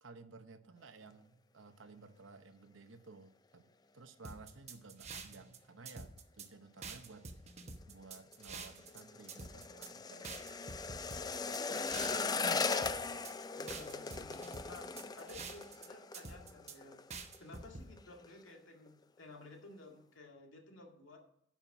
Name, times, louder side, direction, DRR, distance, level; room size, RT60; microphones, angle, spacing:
voice 1, 0.0-3.7 3.9-7.3 7.9-10.3 12.4-13.2, right 3 dB, 75° right, 9 dB, 0.9 m, -55 dB
sound 1, 4.2-5.6 5.9-6.5 6.8-9.0 9.3-9.9 10.2-12.4 12.7-13.3 13.7-15.9 16.1-16.8 17.1-17.9, right 4 dB, 35° right, 1.0 m, -47 dB
sound 2, 8.0-17.1 17.3-17.7 18.0-18.5 18.9-19.0, left 4 dB, 20° left, 0.4 m, -39 dB
voice 2, 11.4-12.7 13.5-17.0 17.4-21.2, left 3 dB, 90° left, 2 dB, 2.1 m, -55 dB
10.0 x 5.8 x 6.0 m, 0.75 s
head